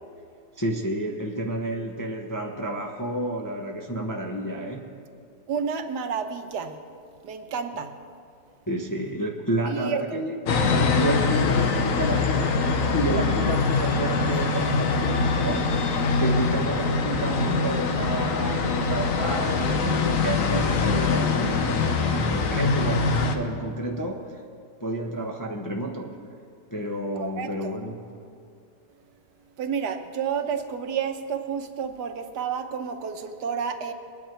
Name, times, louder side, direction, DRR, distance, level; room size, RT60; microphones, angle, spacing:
voice 1, 0.6-5.0 8.7-10.4 10.6-24.4 24.8-26.2 26.7-28.0, right 1 dB, 20° left, 1 dB, 0.6 m, -30 dB
voice 2, 5.5-6.8 7.2-7.9 9.7-10.2 27.2-27.8 29.6-33.9, right 6 dB, 75° right, 7 dB, 1.4 m, -30 dB
sound 1, 10.5-23.3, left 4 dB, 55° left, 1.2 m, -23 dB
21.5 x 9.6 x 4.5 m, 2.3 s
omnidirectional pair, 1.8 m